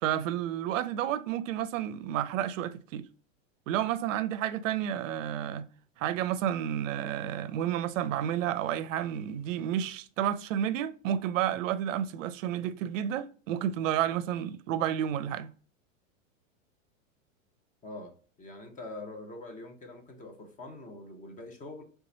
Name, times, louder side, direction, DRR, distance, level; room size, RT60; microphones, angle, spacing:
voice 1, 0.0-3.1 3.7-5.7 6.0-15.5, right 10 dB, 70° right, 0.5 m, -31 dB
voice 2, 17.8-18.1 18.4-21.8, left 2 dB, 20° left, 0.9 m, -44 dB
3.4 x 3.0 x 4.0 m
hypercardioid pair, 125°, 40 cm